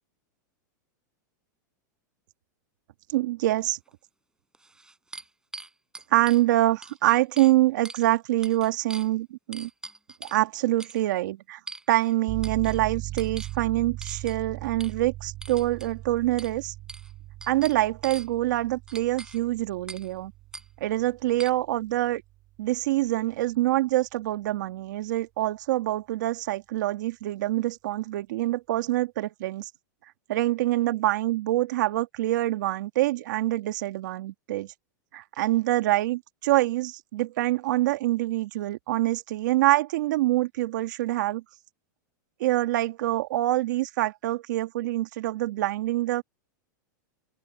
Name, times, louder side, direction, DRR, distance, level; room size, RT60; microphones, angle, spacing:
voice 1, 3.1-3.8 6.1-9.7 10.2-11.6 11.9-16.7 17.5-20.3 20.8-22.2 22.6-29.7 30.3-34.7 35.1-41.4 42.4-46.2, right 16 dB, 70° right, 2.3 m, -25 dB
sound 1, 3.9-4.0 4.5-6.4 6.8-7.5 7.8-8.1 8.4-9.1 9.5-10.4 10.8-11.0 11.7-12.1 12.4-12.8 13.2-13.6 14.0-14.4 14.8-14.9 15.4-15.9 16.4-16.5 16.9-17.1 17.4-18.3 18.9-19.4 19.9-20.1 20.5-20.6 21.4-21.5, right 2 dB, 5° right, 5.9 m, -42 dB
sound 2, 12.3-22.8, right 17 dB, 40° right, 5.9 m, -39 dB
open air
supercardioid pair, 135°, 10 cm